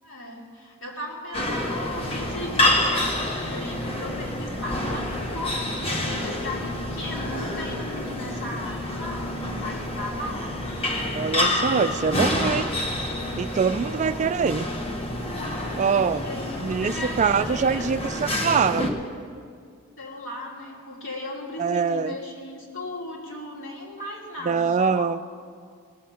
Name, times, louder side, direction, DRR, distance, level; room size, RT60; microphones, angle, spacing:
voice 1, 0.0-10.6 13.7-14.2 15.7-17.8 20.0-25.1, left 1 dB, 60° left, -3 dB, 2.8 m, -36 dB
sound 1, 1.3-18.9, left 1 dB, 25° left, 1.2 m, -28 dB
voice 2, 11.1-12.7 13.4-14.7 15.8-16.2 16.6-18.9 21.6-22.2 24.4-25.2, right 6 dB, 35° right, 12 dB, 0.3 m, -24 dB
18.5 x 7.5 x 5.7 m, 2.2 s
head